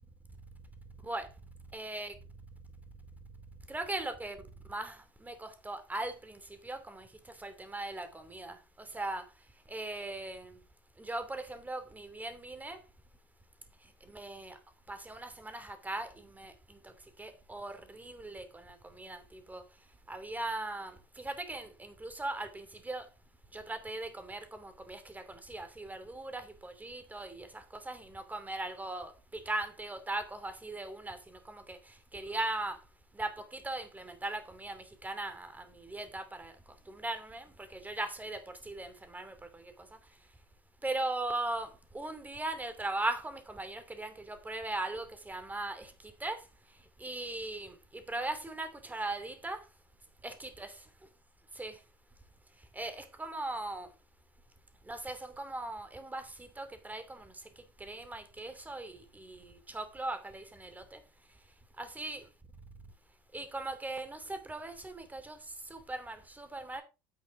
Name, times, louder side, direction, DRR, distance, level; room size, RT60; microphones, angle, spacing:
voice 1, 1.7-2.1 3.7-4.4 4.7-7.1 7.4-9.2 9.7-10.5 11.0-12.8 14.1-14.6 14.9-16.9 17.2-19.6 20.1-23.1 23.5-31.8 32.1-32.8 33.2-36.5 36.9-39.6 40.8-45.9 46.2-46.4 47.0-49.6 50.2-50.7 51.6-51.8 52.7-53.9 54.9-57.3 57.8-61.0 61.8-62.2 63.3-65.4 65.7-66.8, right 2 dB, 15° right, 2.7 m, -39 dB
10.0 x 8.2 x 3.8 m
hypercardioid pair, 70°, 12 cm